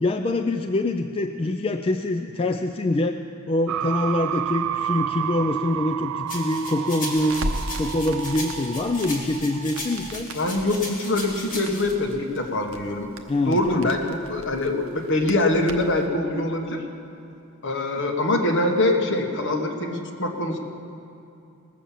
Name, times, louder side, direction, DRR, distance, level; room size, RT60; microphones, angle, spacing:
voice 1, 0.0-3.2 3.5-7.5 7.8-10.3 13.3-13.9, left 2 dB, 25° left, 5 dB, 0.4 m, -25 dB
sound 1, 3.7-10.2, right 10 dB, 85° right, 0.3 m, -31 dB
sound 2, 6.3-11.9, left 2 dB, 40° left, 2.6 m, -36 dB
Crackle, 7.1-16.1, right 1 dB, 65° right, 0.9 m, -38 dB
voice 2, 10.3-13.1 13.4-16.8 17.6-20.6, left 1 dB, 60° left, 2 dB, 1.4 m, -24 dB
19.5 x 7.0 x 7.4 m, 2.7 s
head